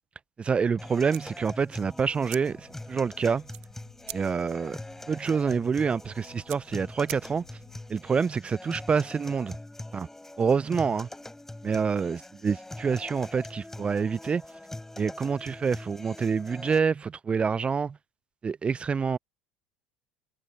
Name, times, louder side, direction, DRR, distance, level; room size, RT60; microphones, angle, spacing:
voice 1, 0.4-3.4 4.1-4.8 5.1-7.4 7.9-9.6 9.9-10.1 10.4-11.1 11.6-14.4 15.0-18.0 18.4-19.2, right 5 dB, 25° right, 0.5 m, -27 dB
sound 1, 0.8-16.8, left 1 dB, 10° left, 4.7 m, -43 dB
sound 2, 1.0-7.7, right 28 dB, 65° right, 1.1 m, -46 dB
sound 3, 2.5-7.9, left 12 dB, 80° left, 8.0 m, -59 dB
hypercardioid pair, 70°, 4 cm